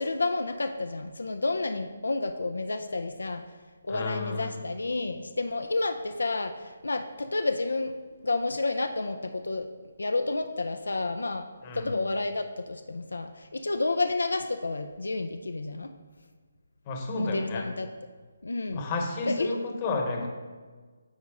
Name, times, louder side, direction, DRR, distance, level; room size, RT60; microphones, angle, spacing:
voice 1, 0.0-3.4 3.8-7.9 8.2-9.7 10.0-11.5 11.7-15.9 17.2-17.9 18.4-18.8 19.3-19.7, left 3 dB, 85° left, 7 dB, 0.4 m, -30 dB
voice 2, 3.9-4.6 11.6-12.0 16.9-17.7 18.7-20.3, left 3 dB, 30° left, 2 dB, 1.0 m, -32 dB
8.6 x 4.0 x 3.6 m, 1.5 s
figure-of-eight pair, 155°, 0 cm